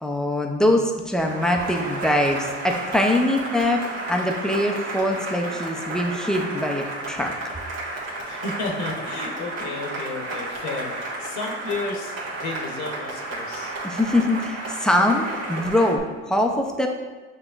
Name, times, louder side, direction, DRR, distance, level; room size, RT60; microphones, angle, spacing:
voice 1, 0.0-7.3 13.8-16.9, left 1 dB, ahead, 2 dB, 0.5 m, -23 dB
Cheering / Applause, 1.2-16.0, right 2 dB, 60° right, 1.4 m, -32 dB
voice 2, 8.2-13.7, left 3 dB, 75° left, 1 dB, 0.9 m, -32 dB
6.8 x 2.9 x 2.4 m, 1.3 s
supercardioid pair, 95°, 29 cm